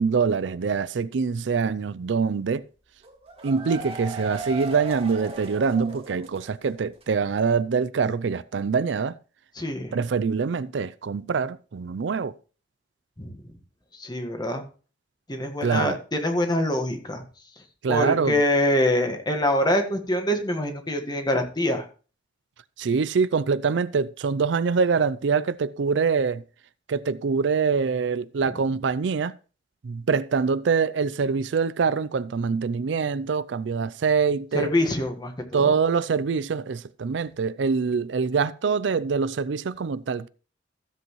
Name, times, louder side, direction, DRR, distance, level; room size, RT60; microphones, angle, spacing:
voice 1, 0.0-2.6 3.4-9.2 9.9-12.4 15.6-16.0 17.8-18.4 22.8-26.4 26.9-29.4 29.8-34.7 35.5-40.3, right 5 dB, 75° right, 0.4 m, -24 dB
sound 1, 3.0-6.7 7.0-7.1 7.4-7.5, right 2 dB, 35° right, 1.9 m, -37 dB
voice 2, 9.6-10.0 13.2-13.3 14.0-14.6 15.3-17.2 17.9-21.8 34.5-35.7, left 1 dB, 25° left, 1.6 m, -25 dB
15.0 x 7.9 x 3.1 m
head